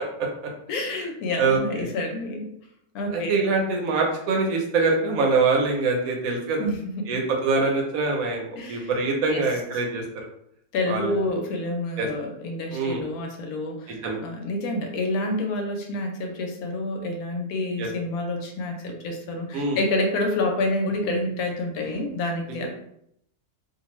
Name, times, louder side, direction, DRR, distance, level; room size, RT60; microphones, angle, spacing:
voice 1, 0.7-2.5 2.9-3.3 6.6-7.1 8.6-8.9 9.3-9.4 9.7-9.8 10.7-22.7, left 2 dB, 75° left, 3 dB, 1.0 m, -28 dB
voice 2, 1.4-1.9 3.1-6.6 7.1-10.2 10.9-11.1 12.0-12.1 12.7-13.0 14.0-14.2 17.8-17.9 19.5-19.8, right 4 dB, 75° right, 1 dB, 1.0 m, -24 dB
2.6 x 2.4 x 2.9 m, 0.74 s
omnidirectional pair, 1.6 m